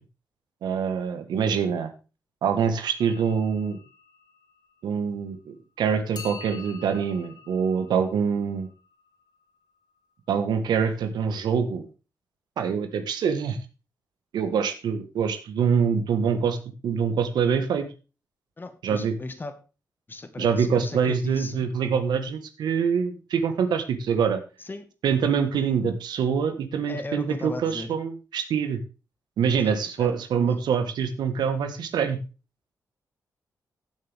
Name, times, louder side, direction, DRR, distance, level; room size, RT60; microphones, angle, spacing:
voice 1, 0.6-1.9 2.4-3.8 4.8-8.7 10.3-11.9 12.6-13.6 14.3-16.6 16.8-17.9 18.8-19.1 20.4-24.4 25.0-28.8 29.4-32.2, right 6 dB, 85° right, 8 dB, 1.5 m, -25 dB
sound 1, 3.0-5.4 6.1-10.0, left 6 dB, 75° left, 3.2 m, -48 dB
voice 2, 18.6-19.6 20.1-21.7 24.6-24.9 26.9-28.0 29.6-30.2 30.5-30.6, left 2 dB, 30° left, 9 dB, 1.6 m, -36 dB
15.5 x 7.6 x 3.6 m, 0.32 s
cardioid pair, 90°, 7 cm